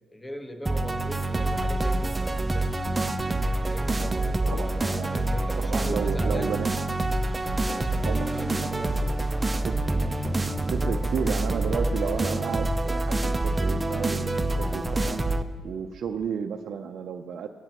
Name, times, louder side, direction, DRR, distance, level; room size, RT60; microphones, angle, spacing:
voice 1, 0.1-2.7 3.7-6.6 7.6-9.3, equal, 10° left, 5 dB, 1.1 m, -39 dB
sound 1, 0.7-15.4, right 2 dB, 20° right, 0.6 m, -26 dB
voice 2, 4.5-5.1 5.6-6.7 8.0-8.3 8.6-8.8 9.6-9.8 10.7-15.2 15.6-17.5, right 7 dB, 65° right, 4 dB, 0.5 m, -32 dB
16.5 x 10.5 x 3.0 m, 1.5 s
cardioid pair, 90°, 0 cm